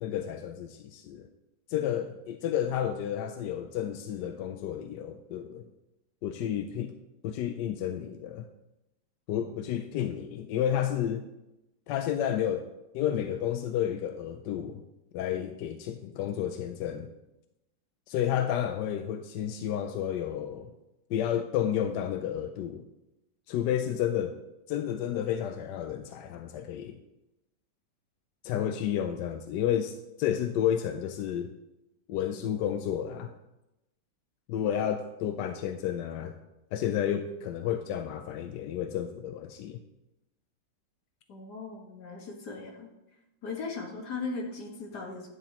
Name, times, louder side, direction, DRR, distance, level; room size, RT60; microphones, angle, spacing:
voice 1, 0.0-1.3 1.7-5.7 6.2-6.9 7.2-8.5 9.3-11.2 11.9-12.7 12.9-14.8 15.1-17.1 18.1-20.7 21.1-22.8 23.5-24.4 24.7-27.0 28.4-31.5 32.1-33.3 34.5-36.3 36.7-39.8, left 10 dB, 70° left, 8 dB, 1.1 m, -31 dB
voice 2, 41.3-42.9 43.4-45.3, left 4 dB, 55° left, 1 dB, 2.0 m, -38 dB
11.0 x 10.0 x 2.9 m, 0.92 s
omnidirectional pair, 2.2 m